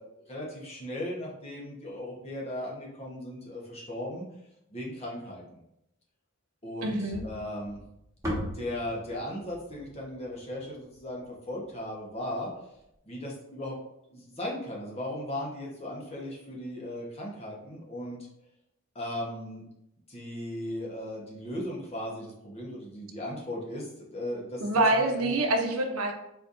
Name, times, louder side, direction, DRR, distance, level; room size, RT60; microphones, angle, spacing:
voice 1, 0.0-4.3 4.7-5.6 6.6-7.8 8.5-12.5 13.0-13.7 14.1-18.2 18.9-19.6 20.1-24.6 25.1-25.4, left 1 dB, 30° left, -3 dB, 1.0 m, -37 dB
voice 2, 6.8-7.2 24.6-26.1, right 2 dB, 90° right, 4 dB, 0.7 m, -26 dB
sound 1, 7.1-11.4, equal, 15° right, 1.2 m, -39 dB
4.4 x 4.0 x 2.5 m, 0.81 s
head